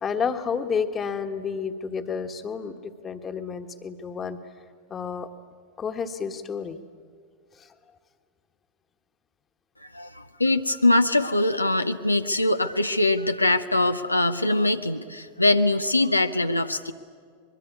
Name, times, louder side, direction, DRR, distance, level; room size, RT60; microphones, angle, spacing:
voice 1, 0.0-4.4 4.9-5.3 5.8-6.8 7.6-7.7, left 6 dB, 20° left, 8 dB, 1.4 m, -30 dB
voice 2, 9.8-16.9, left 2 dB, 85° left, 8 dB, 0.7 m, -22 dB
24.5 x 22.0 x 9.7 m, 2.1 s
figure-of-eight pair, 90°, 0 cm